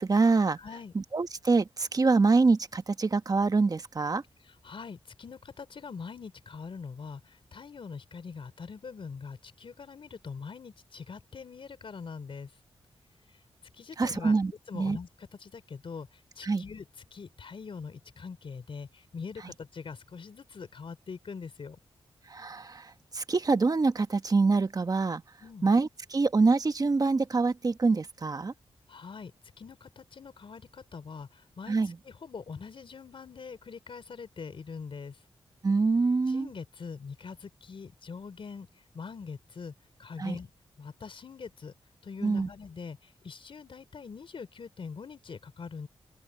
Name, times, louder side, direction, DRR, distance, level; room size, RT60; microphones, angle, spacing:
voice 1, 0.0-0.6 0.9-4.2 14.0-15.0 16.4-16.6 22.3-25.2 25.6-28.5 31.7-31.9 35.6-36.5 40.2-40.4 42.2-42.5, right 4 dB, 40° right, 1.3 m, -25 dB
voice 2, 0.6-0.9 4.6-12.5 13.8-14.3 14.7-16.1 16.4-21.8 25.4-25.7 28.9-29.3 29.6-35.1 36.3-38.7 38.9-39.7 40.0-40.5 40.8-41.7 42.0-45.9, left 5 dB, 60° left, 3.8 m, -43 dB
open air
cardioid pair, 70°, 10 cm